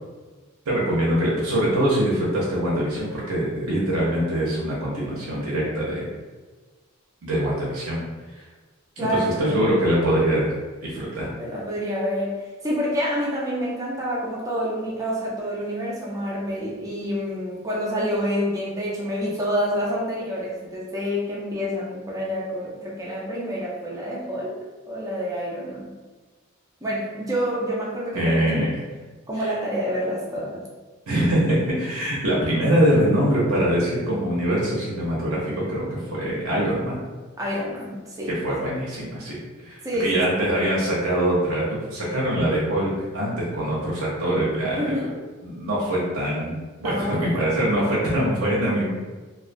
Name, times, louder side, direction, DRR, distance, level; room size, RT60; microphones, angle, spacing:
voice 1, 0.7-6.1 7.2-8.0 9.0-10.5 10.8-11.3 28.1-28.7 29.4-29.5 31.1-37.0 38.4-39.4 39.6-41.7 41.9-44.9 45.4-48.9, right 1 dB, 80° right, -6 dB, 0.7 m, -23 dB
voice 2, 9.0-9.6 11.4-24.5 24.9-25.9 26.8-28.7 29.3-30.6 37.4-38.4 39.8-40.4 44.7-45.1 46.8-47.4, equal, 15° right, -5 dB, 0.5 m, -28 dB
2.3 x 2.3 x 2.5 m, 1.3 s
head